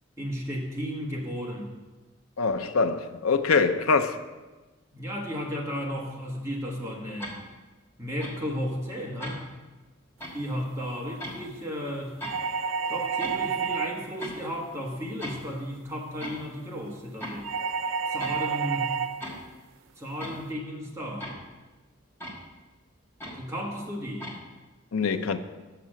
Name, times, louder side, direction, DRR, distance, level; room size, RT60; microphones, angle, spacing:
voice 1, 0.2-1.7 4.9-7.3 8.0-9.5 10.3-12.2 12.9-17.5 18.1-19.0 20.0-21.3 23.3-24.2, equal, 15° right, -2 dB, 1.3 m, -34 dB
voice 2, 2.4-4.2 24.9-25.4, left 4 dB, 90° left, 8 dB, 0.6 m, -24 dB
sound 1, 7.2-7.4 8.2-8.4 9.2-9.4 10.2-10.3 11.2-11.4 12.2-12.4 13.2-13.4 14.2-14.4 15.2-15.6 16.2-16.5 17.2-17.6 18.2-18.5 19.2-19.5 20.2-20.4 21.2-21.6 22.2-22.4 23.2-23.4 24.2-24.4, equal, 10° left, 1.5 m, -38 dB
sound 2, 12.2-14.2 17.4-19.2, right 6 dB, 75° right, 0.4 m, -29 dB
6.8 x 6.0 x 7.5 m, 1.2 s
head